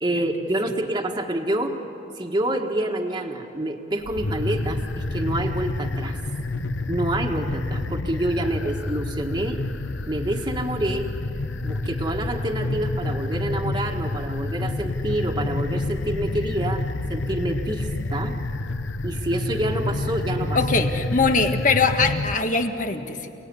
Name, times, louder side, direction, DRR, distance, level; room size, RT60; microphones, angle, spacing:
voice 1, 0.0-1.8 2.1-6.2 6.9-9.6 10.1-11.1 11.6-18.4 19.0-20.6, right 1 dB, 20° right, 1 dB, 1.6 m, -27 dB
sound 1, 4.0-22.4, left 2 dB, 75° left, 0.9 m, -28 dB
voice 2, 20.5-23.3, left 4 dB, 40° left, 5 dB, 1.7 m, -22 dB
29.5 x 18.5 x 9.9 m, 2.8 s
head